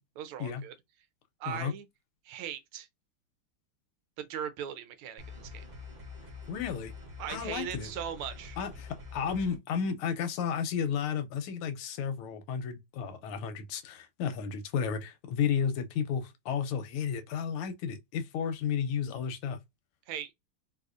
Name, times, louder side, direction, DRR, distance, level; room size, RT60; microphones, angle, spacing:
voice 1, 0.2-0.7 1.4-1.8 2.2-2.9 4.2-5.7 7.2-8.6 20.1-20.3, right 9 dB, 80° right, 1.5 m, -39 dB
sound 1, 5.2-9.6, left 4 dB, 45° right, 0.6 m, -46 dB
voice 2, 6.5-6.9 7.3-7.9 8.6-19.6, left 7 dB, 85° left, 1.5 m, -32 dB
4.1 x 2.6 x 2.4 m
omnidirectional pair, 2.4 m